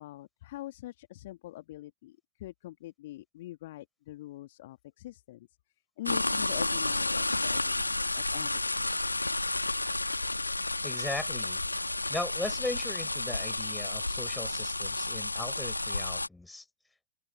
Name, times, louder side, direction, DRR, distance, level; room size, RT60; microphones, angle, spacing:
voice 1, 0.0-5.5 6.0-8.9, left 16 dB, 55° left, 2.5 m, -44 dB
sound 1, 6.1-16.3, left 2 dB, 85° left, 1.8 m, -31 dB
voice 2, 10.8-11.6 12.1-16.6, left 2 dB, 5° left, 5.8 m, -38 dB
open air
figure-of-eight pair, 90°, 0 cm